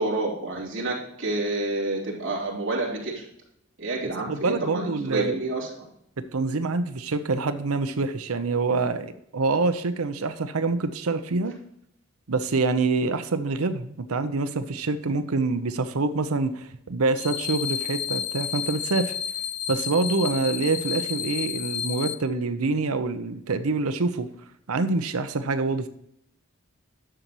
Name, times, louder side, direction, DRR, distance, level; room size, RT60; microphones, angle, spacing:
voice 1, 0.0-3.2 3.8-5.7, right 2 dB, 60° right, -4 dB, 3.3 m, -29 dB
voice 2, 4.3-5.3 6.2-11.6 12.3-19.2 19.7-24.3 24.7-25.9, right 3 dB, 85° right, 10 dB, 0.7 m, -26 dB
sound 1, 17.2-22.1, left 9 dB, 80° left, 0.7 m, -31 dB
11.0 x 6.8 x 3.0 m, 0.74 s
head